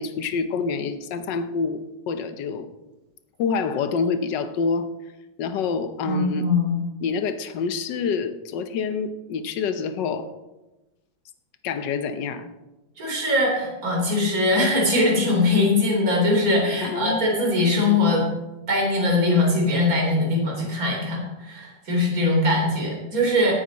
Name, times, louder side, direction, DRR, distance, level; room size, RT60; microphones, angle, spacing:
voice 1, 0.0-2.7 3.4-4.9 5.4-6.5 7.0-10.3 11.6-12.5 16.8-17.2, left 5 dB, 65° left, 9 dB, 1.5 m, -27 dB
voice 2, 6.0-6.7 13.0-18.3 18.7-23.5, left 2 dB, 45° right, -1 dB, 3.8 m, -21 dB
18.0 x 9.3 x 4.1 m, 1.1 s
omnidirectional pair, 2.1 m